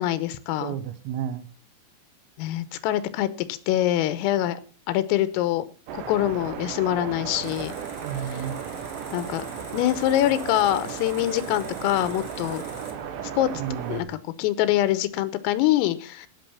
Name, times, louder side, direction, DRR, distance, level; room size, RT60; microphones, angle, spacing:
voice 1, 0.0-0.8 2.4-4.6 4.9-5.7 5.9-7.8 9.1-9.5 9.7-12.6 13.4-13.5 13.9-16.3, left 13 dB, 90° left, 14 dB, 3.6 m, -24 dB
voice 2, 0.6-1.5 8.0-8.6 13.5-14.2, right 9 dB, 80° right, 12 dB, 3.9 m, -32 dB
sound 1, 5.9-14.0, right 8 dB, 65° right, 3.4 m, -35 dB
sound 2, 7.4-12.9, left 3 dB, 15° left, 1.7 m, -46 dB
16.0 x 6.3 x 7.2 m, 0.39 s
omnidirectional pair, 5.9 m